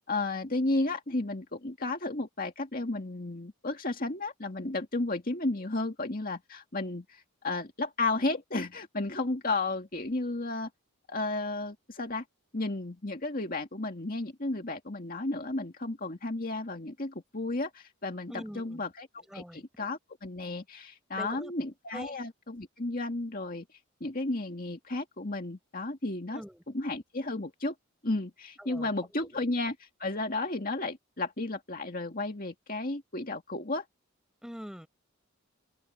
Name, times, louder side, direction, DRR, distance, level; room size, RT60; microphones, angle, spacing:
voice 1, 0.1-10.7 11.1-12.2 12.5-23.6 24.0-26.4 26.7-27.7 28.0-33.9, left 2 dB, 40° left, 2.2 m, -33 dB
voice 2, 18.3-18.8 19.3-19.6 21.1-21.5 21.9-22.2 26.3-26.6 28.6-28.9 29.2-29.4 34.4-34.9, equal, 5° right, 5.2 m, -43 dB
head